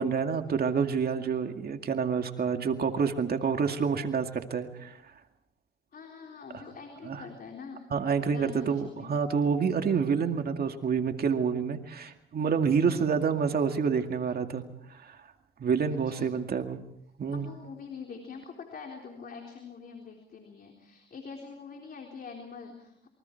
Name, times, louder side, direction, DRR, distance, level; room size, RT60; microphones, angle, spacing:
voice 1, 0.0-4.9 7.0-7.2 7.9-14.6 15.0-15.2 15.6-16.8 17.2-17.5, right 6 dB, 50° right, 5 dB, 2.2 m, -28 dB
voice 2, 5.9-7.8 8.3-9.1 15.9-16.5 17.3-23.1, left 5 dB, 50° left, 2 dB, 3.8 m, -44 dB
28.0 x 23.5 x 4.6 m, 0.76 s
cardioid pair, 90°, 20 cm